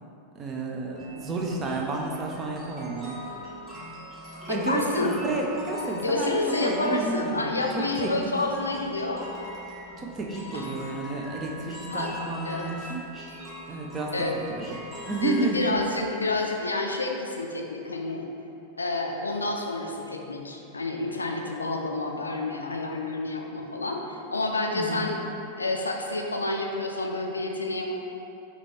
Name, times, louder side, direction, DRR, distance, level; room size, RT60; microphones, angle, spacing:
voice 1, 0.3-3.2 4.5-8.3 10.0-13.0 13.7-15.8 24.7-25.1, right 3 dB, 25° right, 0 dB, 0.5 m, -31 dB
sound 1, 1.0-15.9, left 1 dB, 5° right, 1.1 m, -41 dB
voice 2, 4.5-5.2 5.9-9.2 10.5-10.7 11.9-12.1 12.4-12.7 14.1-14.3 15.2-18.3 18.8-25.2 25.6-27.9, left 2 dB, 80° left, 1 dB, 0.4 m, -29 dB
5.7 x 2.4 x 3.3 m, 2.8 s
figure-of-eight pair, 90°, 0 cm